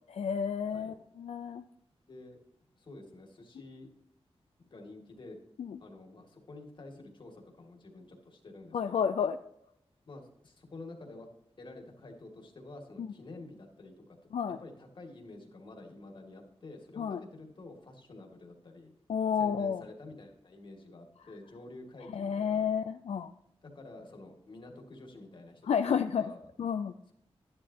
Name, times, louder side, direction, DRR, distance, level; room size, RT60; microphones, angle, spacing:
voice 1, 0.0-1.6 5.6-5.8 8.7-9.4 13.0-13.1 14.3-14.6 17.0-17.2 19.1-19.8 22.1-23.3 25.7-26.2 26.6-26.9, left 7 dB, 80° left, 7 dB, 0.5 m, -31 dB
voice 2, 2.1-2.4 2.8-3.9 4.6-5.4 5.8-9.1 10.1-11.3 11.6-13.9 14.6-18.9 19.4-22.7 23.6-26.4, left 2 dB, 50° left, 2 dB, 2.2 m, -49 dB
13.0 x 11.0 x 2.8 m, 0.77 s
wide cardioid pair, 145°, 11 cm